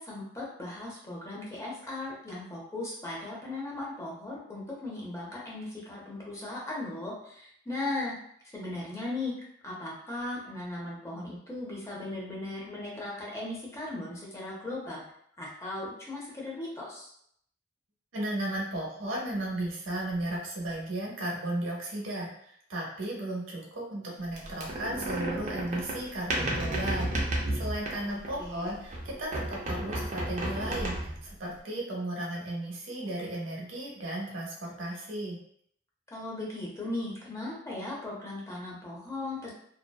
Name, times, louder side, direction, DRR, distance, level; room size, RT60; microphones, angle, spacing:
voice 1, 0.0-8.1 8.5-9.3 9.6-15.0 15.4-17.1 28.0-28.8 36.1-39.5, left 2 dB, 15° left, -4 dB, 0.6 m, -37 dB
voice 2, 18.1-35.4, right 1 dB, 85° right, -3 dB, 0.8 m, -35 dB
sound 1, 24.4-28.5 28.9-31.3, right 1 dB, 40° right, 0.5 m, -32 dB
2.6 x 2.1 x 2.2 m, 0.68 s
head